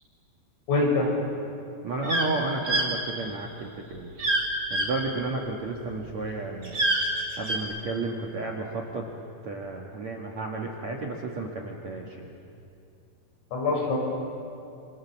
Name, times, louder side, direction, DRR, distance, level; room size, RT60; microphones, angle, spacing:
voice 1, 0.7-1.1 13.5-14.0, left 3 dB, 70° left, -1 dB, 8.7 m, -24 dB
voice 2, 1.8-4.1 4.7-6.9 7.4-9.1 9.4-12.3, right 3 dB, 60° right, 0 dB, 1.8 m, -32 dB
sound 1, 2.0-2.3 2.6-2.9 4.2-4.4 4.7-4.9 6.6-7.6, right 2 dB, 25° right, 4.1 m, -25 dB
29.0 x 27.0 x 7.4 m, 2.6 s
omnidirectional pair, 6.0 m